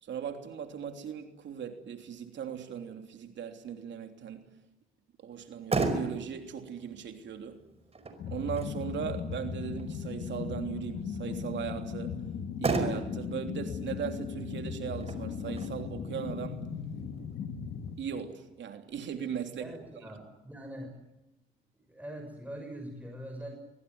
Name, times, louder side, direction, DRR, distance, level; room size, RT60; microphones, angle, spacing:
voice 1, 0.0-4.5 5.2-7.6 8.3-12.2 12.6-16.6 18.0-19.7, right 8 dB, 65° right, 6 dB, 3.2 m, -38 dB
Motor vehicle (road), 5.3-18.3, right 3 dB, 30° right, 5.3 m, -38 dB
sound 1, 8.2-18.0, left 6 dB, 70° left, 2.7 m, -37 dB
voice 2, 19.6-20.9 21.9-23.5, right 1 dB, 5° right, 3 dB, 6.5 m, -42 dB
23.5 x 22.5 x 9.5 m, 0.96 s
cardioid pair, 90°, 20 cm